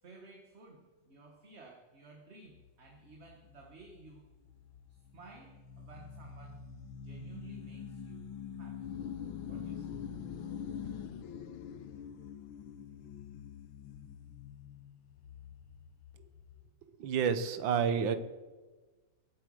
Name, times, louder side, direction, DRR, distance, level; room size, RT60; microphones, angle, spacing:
voice 1, 0.0-4.3 4.9-6.6 6.9-8.3 8.6-8.9 9.5-9.9, right 3 dB, 35° right, 1 dB, 1.7 m, -55 dB
sound 1, 2.5-16.7, left 7 dB, 90° left, 1.7 m, -45 dB
voice 2, 17.0-18.2, right 7 dB, 75° right, 11 dB, 1.8 m, -29 dB
22.0 x 8.2 x 6.4 m, 1.3 s
omnidirectional pair, 2.1 m